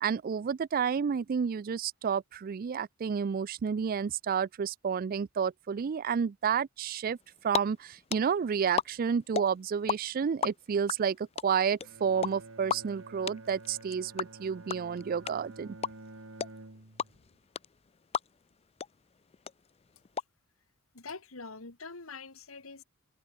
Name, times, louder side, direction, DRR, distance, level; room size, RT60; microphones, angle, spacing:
voice 1, 0.0-7.2 7.4-15.8, right 7 dB, 45° right, 0.4 m, -30 dB
sound 1, 7.2-7.6 7.9-10.0 10.2-18.5 18.8-18.9 19.2-20.2, left 6 dB, 30° left, 0.4 m, -33 dB
Bowed string instrument, 11.8-17.3, right 2 dB, 75° right, 2.3 m, -50 dB
voice 2, 20.9-22.8, left 4 dB, 85° left, 2.3 m, -44 dB
head